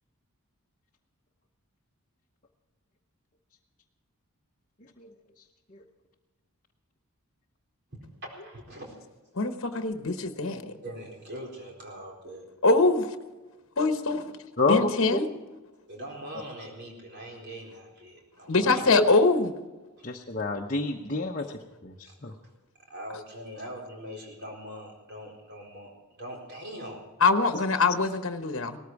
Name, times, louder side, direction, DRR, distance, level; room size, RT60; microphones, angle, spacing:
voice 1, 8.2-9.0 10.8-12.5 12.9-13.0 15.9-18.9 20.0-20.1 21.4-21.5 22.0-22.3 22.9-25.9 26.2-27.0, equal, 50° right, 0 dB, 4.4 m, -42 dB
voice 2, 9.4-10.7 12.6-13.1 13.8-14.3 14.7-15.3 18.5-19.5 27.2-28.8, left 3 dB, 60° left, 8 dB, 1.1 m, -23 dB
voice 3, 14.6-15.2 18.6-18.7 20.0-21.5 21.8-21.9 22.2-22.3, left 3 dB, 35° left, -1 dB, 0.9 m, -28 dB
18.5 x 14.0 x 4.8 m, 1.2 s
head